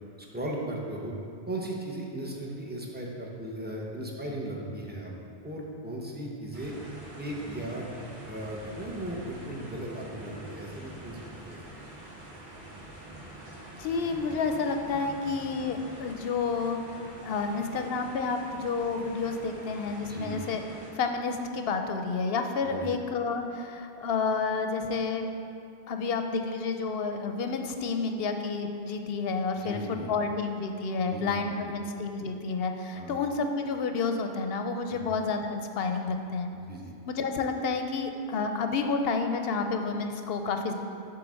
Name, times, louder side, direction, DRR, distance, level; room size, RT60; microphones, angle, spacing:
voice 1, 0.3-1.1 1.5-5.1 5.4-6.7 7.2-7.9 8.3-11.2 11.4-11.6 20.0-20.4 22.6-22.9 29.6-30.1 31.1-31.6 32.9-33.2 34.9-35.0 36.7-36.9, right 1 dB, 10° right, -3 dB, 0.8 m, -37 dB
sound 1, 6.5-20.9, right 1 dB, 70° right, 1.6 m, -45 dB
voice 2, 13.8-16.8 17.2-20.6 20.9-25.3 25.9-36.5 37.1-40.7, left 4 dB, 70° left, 6 dB, 0.8 m, -30 dB
7.9 x 3.5 x 6.3 m, 2.6 s
omnidirectional pair, 1.1 m